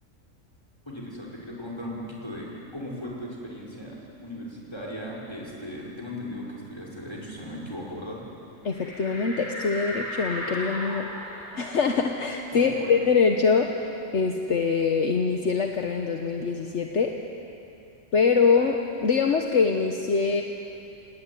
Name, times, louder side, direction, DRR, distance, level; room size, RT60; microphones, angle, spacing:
voice 1, 0.9-4.0 4.2-8.2 12.5-12.9, left 1 dB, 20° left, -4 dB, 5.5 m, -37 dB
voice 2, 8.6-11.1 11.5-17.1 18.1-18.8 19.0-20.4, left 5 dB, 60° left, 3 dB, 1.4 m, -24 dB
sound 1, 8.7-13.9 14.2-14.3 14.7-16.3, equal, 35° left, 5.1 m, -38 dB
27.0 x 18.5 x 9.7 m, 2.8 s
omnidirectional pair, 1.4 m